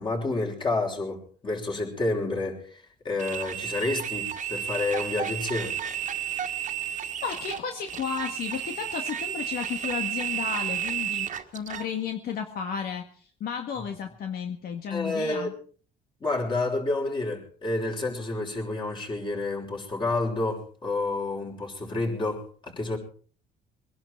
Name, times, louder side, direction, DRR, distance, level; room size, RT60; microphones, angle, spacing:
voice 1, 0.0-5.8 14.9-15.5 16.2-23.0, left 2 dB, 30° left, 0 dB, 6.0 m, -29 dB
sound 1, 3.2-11.9, right 10 dB, 50° right, 1.7 m, -32 dB
voice 2, 7.2-15.5, left 7 dB, 65° left, 4 dB, 1.9 m, -33 dB
23.5 x 11.5 x 4.7 m, 0.42 s
cardioid pair, 110°, 17 cm